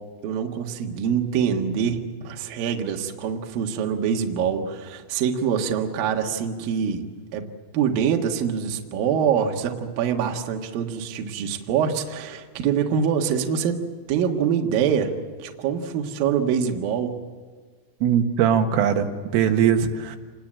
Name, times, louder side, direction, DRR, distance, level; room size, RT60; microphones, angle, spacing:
voice 1, 0.2-7.1 7.3-7.5 7.7-13.8 14.1-15.1 15.4-17.2, right 7 dB, 60° right, 3 dB, 2.8 m, -24 dB
voice 2, 18.0-20.2, right 8 dB, 85° right, 4 dB, 4.2 m, -21 dB
27.5 x 20.0 x 8.9 m, 1.5 s
omnidirectional pair, 5.7 m